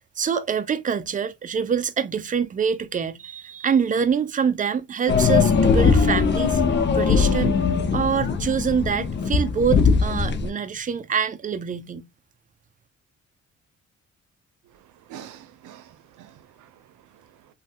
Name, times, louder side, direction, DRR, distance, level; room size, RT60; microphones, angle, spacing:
voice 1, 0.2-6.6 6.9-7.6 7.9-12.1, right 7 dB, 25° right, 0.5 m, -25 dB
sound 1, 5.1-10.5, left 5 dB, 35° left, 0.6 m, -20 dB
voice 2, 14.7-17.5, right 9 dB, 80° right, 0.6 m, -47 dB
3.1 x 2.3 x 2.7 m
cardioid pair, 90°, 30 cm